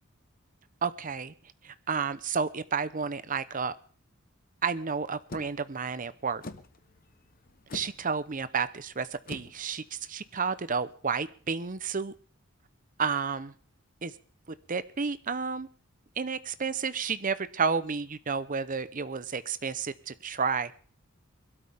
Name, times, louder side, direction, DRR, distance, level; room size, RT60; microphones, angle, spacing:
voice 1, 0.8-1.3 1.6-3.7 4.6-6.4 7.7-12.1 13.0-13.5 14.0-14.1 14.7-15.7 16.2-20.7, right 5 dB, 40° right, 14 dB, 0.8 m, -31 dB
sound 1, 5.3-10.9, left 2 dB, 45° left, 1.0 m, -47 dB
22.0 x 12.5 x 3.6 m, 0.41 s
head